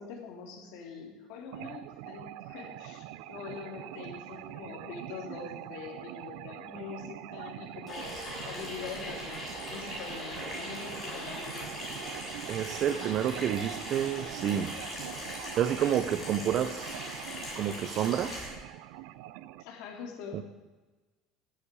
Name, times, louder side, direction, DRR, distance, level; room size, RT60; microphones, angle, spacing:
voice 1, 0.0-11.6 19.6-20.4, left 5 dB, 60° left, 3 dB, 3.2 m, -44 dB
sound 1, 1.5-19.6, right 14 dB, 75° right, 0.7 m, -44 dB
Water tap faucet / Sink (filling or washing), 7.9-18.5, left 1 dB, 20° left, 6.2 m, -40 dB
voice 2, 12.5-14.7 15.6-17.1 17.5-18.5 20.3-20.4, right 10 dB, 35° right, 10 dB, 0.7 m, -29 dB
14.5 x 11.5 x 8.4 m, 1.2 s
cardioid pair, 180°, 0 cm